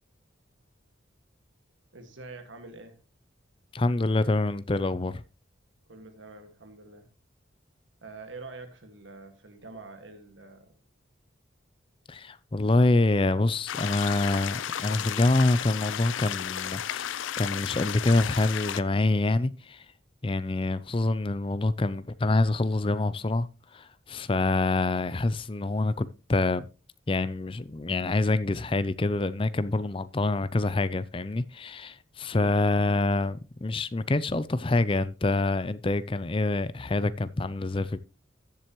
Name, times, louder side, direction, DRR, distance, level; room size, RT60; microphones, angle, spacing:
voice 1, 1.9-3.0 5.9-7.1 8.0-10.8 32.4-32.6, right 3 dB, 75° right, 1.9 m, -45 dB
voice 2, 3.7-5.2 12.1-19.8 20.2-26.7 27.1-38.0, left 2 dB, 25° left, 0.5 m, -26 dB
sound 1, 13.7-18.8, left 10 dB, 80° left, 0.5 m, -33 dB
14.0 x 7.7 x 3.0 m
head